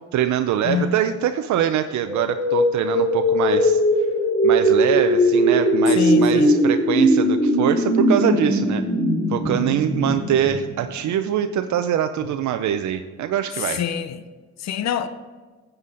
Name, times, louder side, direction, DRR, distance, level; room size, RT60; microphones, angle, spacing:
voice 1, 0.1-3.8 4.4-8.8 9.3-13.8, right 10 dB, 70° right, 0.6 m, -23 dB
sound 1, 2.1-11.0, equal, 5° left, 2.7 m, -19 dB
voice 2, 5.9-6.5 13.6-14.2 14.6-15.1, left 8 dB, 65° left, 0.7 m, -25 dB
9.7 x 8.0 x 3.8 m
cardioid pair, 90°, 30 cm